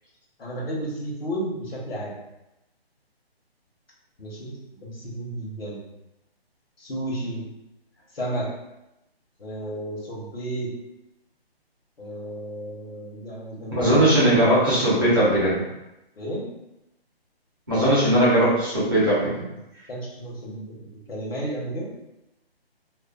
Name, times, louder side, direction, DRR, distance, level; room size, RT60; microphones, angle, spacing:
voice 1, 0.4-2.1 4.2-4.5 4.8-5.8 6.8-7.4 8.1-8.5 9.4-10.7 12.0-15.2 16.2-16.5 19.9-21.9, right 1 dB, 70° left, -4 dB, 1.0 m, -32 dB
voice 2, 13.7-15.6 17.7-19.5, right 1 dB, 20° right, -11 dB, 0.7 m, -19 dB
2.4 x 2.2 x 2.4 m, 0.92 s
hypercardioid pair, 175°, 31 cm